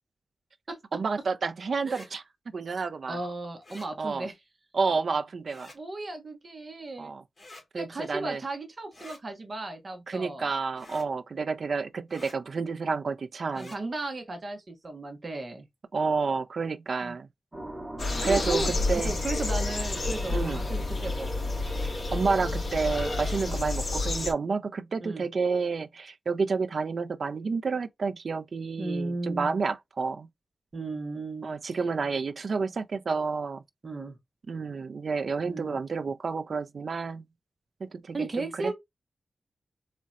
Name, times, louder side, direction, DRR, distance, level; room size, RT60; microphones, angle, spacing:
voice 1, 0.9-2.2 2.5-3.2 4.0-4.3 4.7-5.7 7.0-7.2 7.7-8.4 10.1-13.7 15.9-17.3 18.2-19.1 20.3-20.6 21.8-30.3 31.4-33.6 34.5-37.2 37.8-38.7, right 4 dB, 55° right, 0.4 m, -30 dB
sound 1, 1.8-2.1 3.6-3.9 5.5-5.8 7.4-7.7 8.9-9.2 10.8-11.1 12.1-12.4 13.5-13.8, left 2 dB, 30° left, 2.3 m, -48 dB
voice 2, 3.1-4.3 5.7-7.1 7.7-10.5 13.5-15.7 17.0-17.1 18.2-21.3 23.4-23.7 25.0-25.3 28.8-29.5 30.7-31.5 33.8-34.2 35.5-35.8 38.1-38.7, right 2 dB, 35° right, 1.1 m, -35 dB
sound 2, 17.5-24.2, right 1 dB, 20° right, 1.4 m, -43 dB
sound 3, 18.0-24.3, left 2 dB, 50° left, 2.3 m, -30 dB
4.1 x 2.9 x 2.3 m
wide cardioid pair, 165°, 0 cm